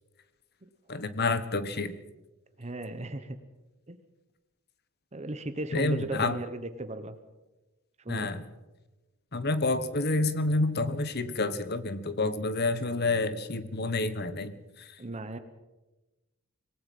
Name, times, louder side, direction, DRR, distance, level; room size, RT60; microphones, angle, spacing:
voice 1, 0.9-2.0 5.7-6.4 8.1-8.4 9.3-14.9, left 2 dB, 50° left, 12 dB, 1.4 m, -29 dB
voice 2, 2.6-3.4 3.9-4.0 5.1-7.1 8.0-8.3 15.0-15.4, right 2 dB, 30° right, 10 dB, 1.1 m, -36 dB
26.0 x 18.5 x 5.6 m, 1.1 s
head